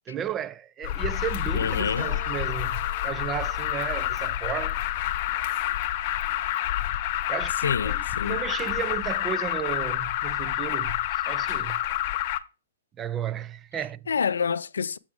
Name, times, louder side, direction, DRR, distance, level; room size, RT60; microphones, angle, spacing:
voice 1, 0.1-4.8 7.3-11.8 13.0-14.0, right 9 dB, 20° right, 0.3 m, -34 dB
Alarm, 0.8-12.4, left 13 dB, 40° left, 0.6 m, -28 dB
voice 2, 1.5-2.1 7.6-8.4 14.1-15.0, left 6 dB, 85° left, 0.4 m, -27 dB
Piano, 2.0-6.4 7.5-8.2, right 5 dB, 80° right, 1.5 m, -49 dB
7.0 x 6.0 x 3.5 m
hypercardioid pair, 140°, 0 cm